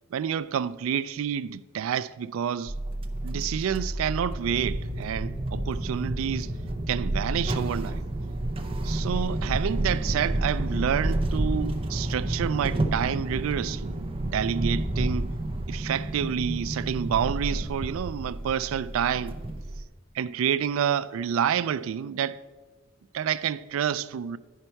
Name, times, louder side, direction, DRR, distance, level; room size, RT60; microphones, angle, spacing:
voice 1, 0.1-2.7 3.2-6.5 6.9-8.0 8.8-13.9 14.2-15.3 15.7-19.3 20.1-22.4 23.1-24.4, right 8 dB, 80° right, 0.3 m, -28 dB
sound 1, 2.7-19.8, right 1 dB, 25° right, 0.5 m, -30 dB
9.8 x 5.6 x 4.5 m
head